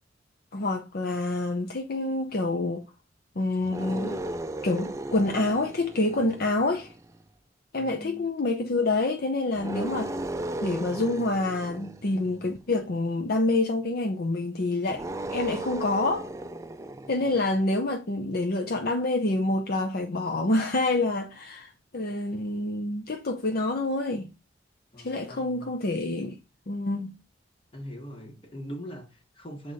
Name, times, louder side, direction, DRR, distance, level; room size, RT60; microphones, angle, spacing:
voice 1, 0.5-2.8 3.4-4.4 4.6-6.9 7.7-10.1 10.6-16.3 17.1-24.3 25.0-26.4 26.7-27.1, left 2 dB, 55° left, 0.7 m, -27 dB
sound 1, 3.6-7.2 9.5-12.7 14.9-17.6, right 1 dB, 15° right, 0.4 m, -36 dB
voice 2, 7.7-8.3 24.9-25.7 27.7-29.7, equal, 30° left, 1.5 m, -41 dB
6.7 x 4.1 x 4.1 m
head